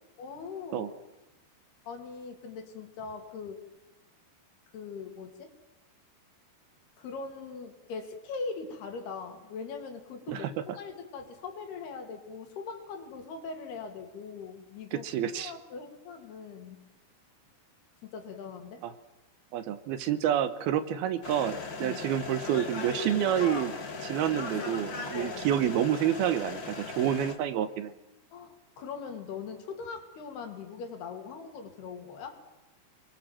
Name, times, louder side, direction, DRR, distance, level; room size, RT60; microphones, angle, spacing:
voice 1, 0.2-1.0 1.9-3.6 4.7-5.5 7.0-15.1 15.3-16.8 18.0-18.8 21.8-22.0 25.1-25.5 28.3-32.4, left 5 dB, 70° left, 5 dB, 4.6 m, -41 dB
voice 2, 14.9-15.5 18.8-18.9 19.5-23.7 24.0-27.9, right 10 dB, 75° right, 12 dB, 2.7 m, -28 dB
sound 1, 21.2-27.3, left 4 dB, 35° left, 2.3 m, -38 dB
27.0 x 22.0 x 7.6 m, 0.98 s
omnidirectional pair, 4.8 m